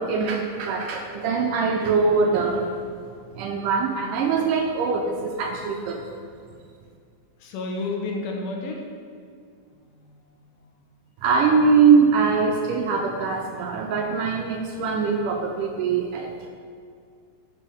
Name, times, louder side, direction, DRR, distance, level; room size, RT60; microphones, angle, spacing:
voice 1, 0.0-2.9 3.4-6.1 11.2-16.5, right 5 dB, 80° right, 2 dB, 2.0 m, -22 dB
voice 2, 7.4-8.9 9.7-10.2 10.4-10.7, left 3 dB, 80° left, 1 dB, 2.9 m, -32 dB
11.5 x 8.2 x 3.5 m, 2.3 s
omnidirectional pair, 4.2 m